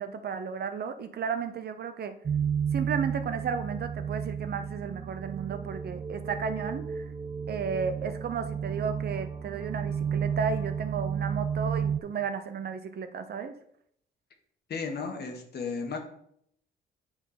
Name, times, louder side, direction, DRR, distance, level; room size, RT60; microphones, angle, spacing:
voice 1, 0.0-2.1 2.7-7.0 7.5-13.5, right 6 dB, 55° right, 9 dB, 0.7 m, -33 dB
sound 1, 2.3-12.0, right 7 dB, 25° right, 0.4 m, -32 dB
voice 2, 14.7-16.0, left 5 dB, 55° left, 4 dB, 1.5 m, -34 dB
8.9 x 3.7 x 4.1 m, 0.69 s
cardioid pair, 90°, 20 cm